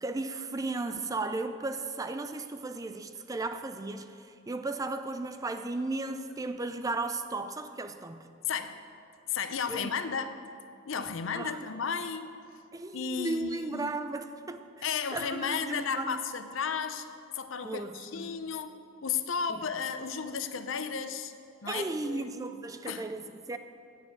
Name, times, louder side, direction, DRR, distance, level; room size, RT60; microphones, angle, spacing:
voice 1, 0.0-8.3 9.7-9.9 11.0-11.1 11.3-11.6 12.7-16.2 17.6-18.3 19.5-19.6 21.7-23.6, right 2 dB, 15° right, 0.4 m, -35 dB
voice 2, 8.5-8.8 9.3-10.4 10.8-12.3 12.9-13.9 14.8-17.1 17.3-18.7 19.0-21.3 21.6-22.3 22.9-23.0, left 6 dB, 70° left, 0.6 m, -33 dB
9.2 x 7.4 x 8.3 m
head